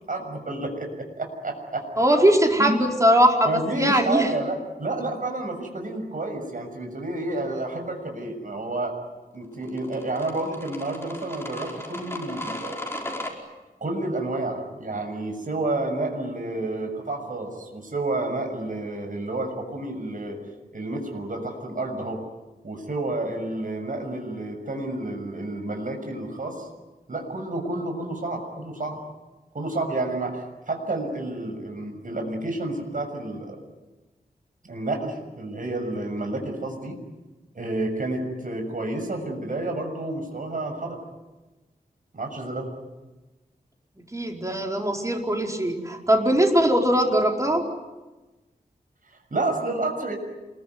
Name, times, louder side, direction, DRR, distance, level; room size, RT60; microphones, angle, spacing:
voice 1, 0.1-0.9 1.2-1.8 2.6-2.7 3.4-8.9 9.3-12.8 13.8-20.4 20.7-22.2 22.6-26.7 27.1-29.0 29.5-33.6 34.6-37.0 37.5-41.0 42.1-42.7 49.1-50.1, right 2 dB, 55° right, 4 dB, 6.7 m, -30 dB
voice 2, 2.0-4.3 44.1-47.7, equal, 20° right, 1 dB, 4.6 m, -20 dB
sound 1, 9.7-13.3, left 1 dB, 15° left, 5.0 m, -36 dB
28.0 x 22.5 x 9.6 m, 1.1 s
wide cardioid pair, 105°, 16 cm